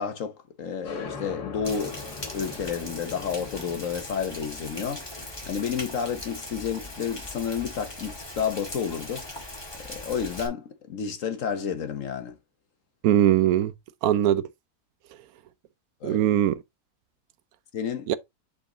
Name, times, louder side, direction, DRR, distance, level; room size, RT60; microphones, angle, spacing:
voice 1, 0.0-2.0 2.3-12.4 16.0-16.2 17.7-18.1, left 7 dB, 60° left, 1.2 m, -31 dB
sound 1, 0.8-8.1, left 4 dB, 80° left, 2.0 m, -42 dB
Rain, 1.6-10.5, left 1 dB, 15° left, 1.5 m, -40 dB
voice 2, 13.0-13.7 14.0-14.5 16.0-16.6 18.1-18.2, right 12 dB, 70° right, 1.0 m, -21 dB
7.5 x 4.0 x 3.7 m
omnidirectional pair, 1.7 m